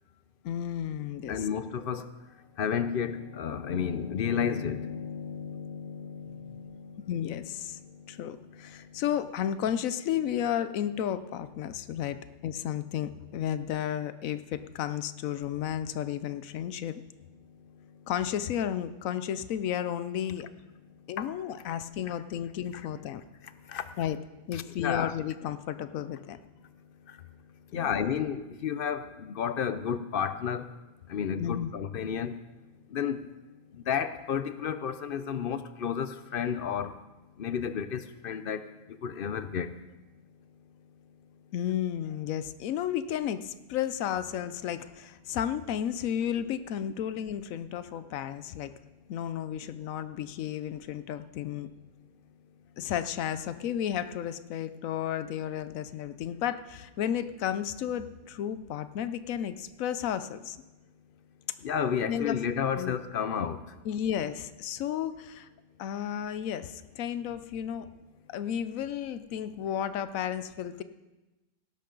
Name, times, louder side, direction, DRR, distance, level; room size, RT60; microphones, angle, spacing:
voice 1, 0.4-1.4 7.1-7.8 8.1-12.2 12.4-17.0 18.1-20.5 21.1-23.2 24.0-24.2 24.5-26.4 27.7-28.0 31.4-31.7 41.5-48.7 49.1-51.7 52.8-60.6 62.1-62.4 62.8-62.9 63.9-65.5 65.8-67.9 68.3-70.8, left 10 dB, 85° left, 12 dB, 1.0 m, -33 dB
voice 2, 1.3-2.1 2.6-9.0 11.7-12.0 17.9-18.0 21.2-21.3 22.1-22.2 22.7-22.8 23.4-24.0 24.5-25.2 27.1-27.2 27.7-30.7 31.1-32.4 32.9-33.3 33.7-37.0 37.4-39.8 61.6-63.8, left 7 dB, 55° left, 12 dB, 0.7 m, -32 dB
18.0 x 10.5 x 3.9 m, 1.1 s
omnidirectional pair, 1.4 m